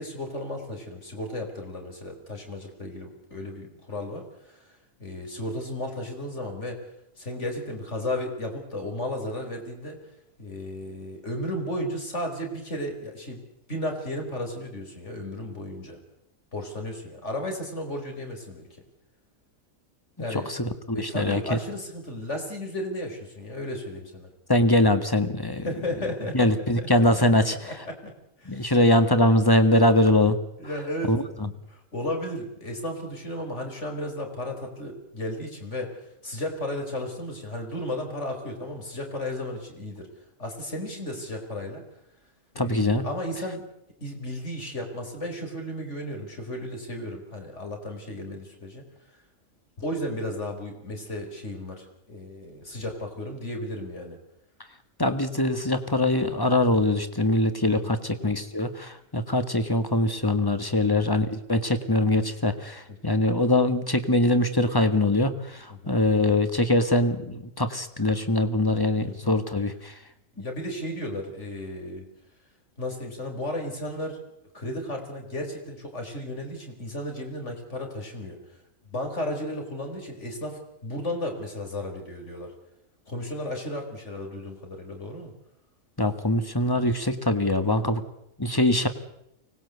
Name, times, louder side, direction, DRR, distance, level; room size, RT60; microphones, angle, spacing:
voice 1, 0.0-4.7 5.0-6.8 7.2-10.0 10.4-13.4 13.7-16.0 16.5-18.7 20.2-20.5 20.9-24.3 25.6-27.2 27.6-28.1 28.4-28.8 30.6-35.9 36.2-40.1 40.4-41.8 42.5-43.6 44.0-48.8 49.8-54.2 57.7-58.0 60.8-61.1 65.7-66.0 69.0-69.4 70.4-72.1 72.8-74.2 74.5-78.4 78.8-82.5 83.1-85.3 87.7-88.0, left 1 dB, 55° left, 3 dB, 5.2 m, -34 dB
voice 2, 20.3-21.4 24.5-25.7 26.3-27.6 28.5-30.4 31.1-31.5 42.6-43.0 55.0-69.9 86.0-88.0 88.4-88.9, left 1 dB, 15° left, 9 dB, 1.7 m, -23 dB
24.5 x 19.5 x 8.2 m, 0.80 s
omnidirectional pair, 1.4 m